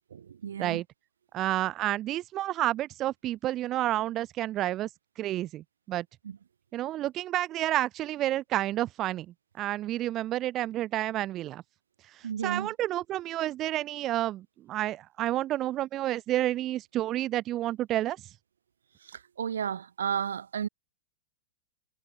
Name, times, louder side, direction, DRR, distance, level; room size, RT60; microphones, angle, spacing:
voice 1, 0.1-0.8 6.2-6.4 12.2-12.7 19.0-20.7, right 8 dB, 85° right, 5.4 m, -33 dB
voice 2, 1.3-4.9 5.2-6.1 6.7-9.3 9.6-11.6 12.4-18.2, right 14 dB, 35° right, 3.6 m, -30 dB
hypercardioid pair, 120°, 0 cm